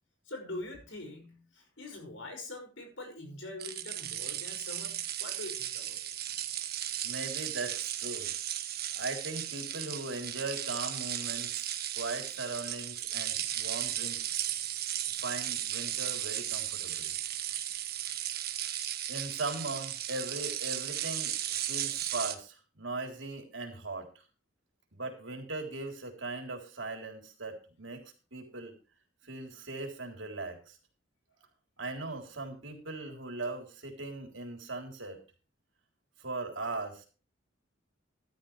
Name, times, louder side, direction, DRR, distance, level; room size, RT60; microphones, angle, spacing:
voice 1, 0.3-6.0, left 2 dB, 70° left, 4 dB, 6.2 m, -44 dB
sound 1, 3.6-22.3, right 11 dB, 55° right, 1.4 m, -35 dB
voice 2, 7.0-8.3 9.0-14.5 15.2-17.1 19.1-24.1 24.9-28.0 28.3-28.7 29.2-30.8 31.8-35.2 36.2-37.1, right 2 dB, 70° right, 3 dB, 3.7 m, -39 dB
14.5 x 12.0 x 3.3 m, 0.34 s
head